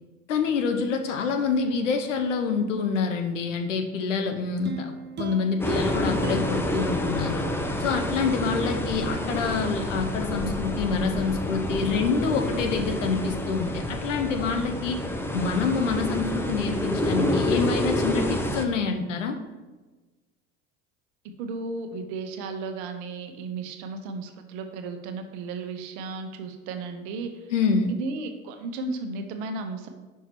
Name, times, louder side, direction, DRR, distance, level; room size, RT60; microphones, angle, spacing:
voice 1, 0.3-7.5 7.8-15.0 15.3-19.4 27.5-28.0, left 5 dB, 85° left, 6 dB, 0.8 m, -27 dB
sound 1, 4.6-7.9 8.4-8.5, right 3 dB, 30° right, 0.8 m, -38 dB
sound 2, 5.6-18.7, left 1 dB, 5° left, 0.6 m, -28 dB
voice 2, 21.4-27.3 28.0-29.9, right 3 dB, 65° right, 6 dB, 1.0 m, -34 dB
5.5 x 4.7 x 4.6 m, 1.2 s
hypercardioid pair, 75°, 37 cm